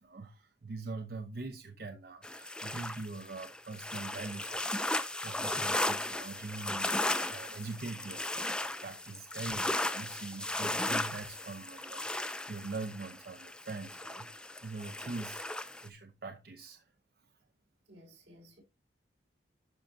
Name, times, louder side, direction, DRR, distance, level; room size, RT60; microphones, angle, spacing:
voice 1, 0.0-16.9, right 3 dB, 55° right, 0.7 m, -43 dB
sound 1, 2.2-15.9, left 1 dB, 5° left, 0.4 m, -36 dB
voice 2, 17.9-18.6, equal, 85° right, 4.5 m, -56 dB
11.0 x 5.7 x 2.6 m
head